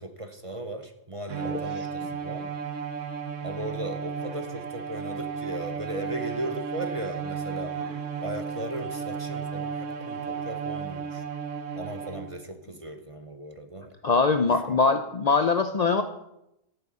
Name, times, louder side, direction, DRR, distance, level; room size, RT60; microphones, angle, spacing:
voice 1, 0.0-2.5 3.4-7.7 8.2-11.2 11.7-13.9 14.5-14.8, right 1 dB, 30° right, 6 dB, 0.9 m, -37 dB
Bowed string instrument, 1.3-12.5, right 6 dB, 90° right, 1.3 m, -34 dB
voice 2, 1.5-1.9 14.0-16.0, left 4 dB, 50° left, 8 dB, 0.5 m, -23 dB
13.0 x 7.7 x 5.5 m, 0.85 s
omnidirectional pair, 1.2 m